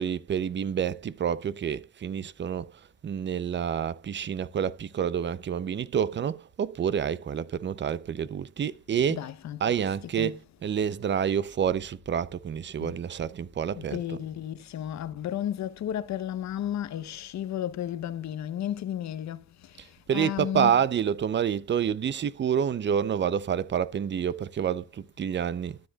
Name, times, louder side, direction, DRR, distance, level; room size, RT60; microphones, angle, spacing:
voice 1, 0.0-9.3 9.6-14.2 19.8-25.8, right 8 dB, 40° right, 0.6 m, -28 dB
voice 2, 9.1-10.5 12.8-13.0 13.8-21.0, left 11 dB, 65° left, 0.9 m, -34 dB
12.5 x 9.9 x 2.4 m
cardioid pair, 90°, 30 cm